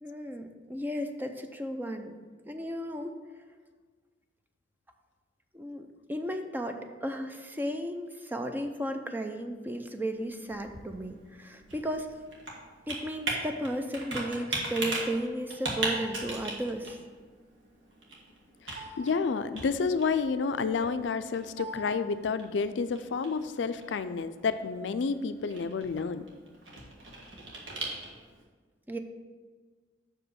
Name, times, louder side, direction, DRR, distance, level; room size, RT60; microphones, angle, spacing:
voice 1, 0.0-2.1 2.5-3.2 5.5-12.1 12.9-17.0 28.9-29.0, equal, 10° right, 5 dB, 0.5 m, -34 dB
Computer keyboard, 10.1-28.4, right 2 dB, 85° right, 1.6 m, -39 dB
voice 2, 18.7-26.3, left 5 dB, 75° left, 11 dB, 0.4 m, -30 dB
6.1 x 5.0 x 6.3 m, 1.4 s
head